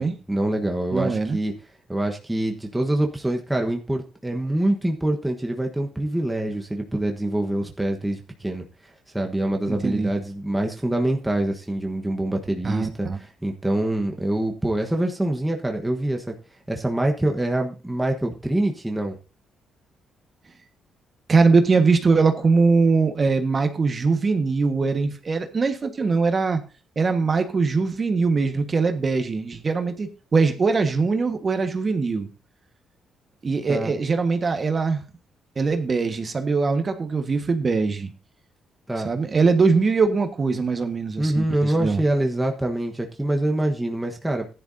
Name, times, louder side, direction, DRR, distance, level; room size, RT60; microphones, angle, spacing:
voice 1, 0.3-1.5 1.9-8.7 9.1-16.3 16.7-19.1 33.7-33.9 38.9-39.1 41.2-44.5, right 1 dB, 10° right, 2 dB, 1.3 m, -25 dB
voice 2, 0.9-1.4 9.7-10.1 12.6-13.2 21.3-26.6 26.9-32.3 33.4-35.0 35.5-38.1 39.0-42.0, right 4 dB, 35° right, 7 dB, 1.5 m, -22 dB
15.0 x 10.5 x 2.7 m, 0.34 s
cardioid pair, 90°, 0 cm